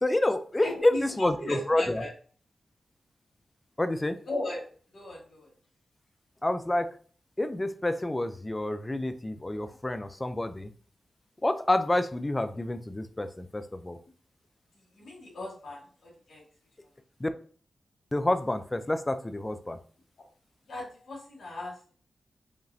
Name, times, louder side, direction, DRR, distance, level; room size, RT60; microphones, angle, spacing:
voice 1, 0.0-2.0 3.8-4.2 6.4-6.9 7.4-10.7 11.4-14.0 17.2-17.3 18.1-19.8, left 1 dB, 20° left, 10 dB, 0.5 m, -28 dB
voice 2, 0.6-2.1 4.3-4.6 4.9-5.5 14.9-16.4 20.7-21.9, left 2 dB, 75° left, -4 dB, 2.0 m, -37 dB
5.1 x 3.0 x 2.7 m, 0.44 s
cardioid pair, 55°, 0 cm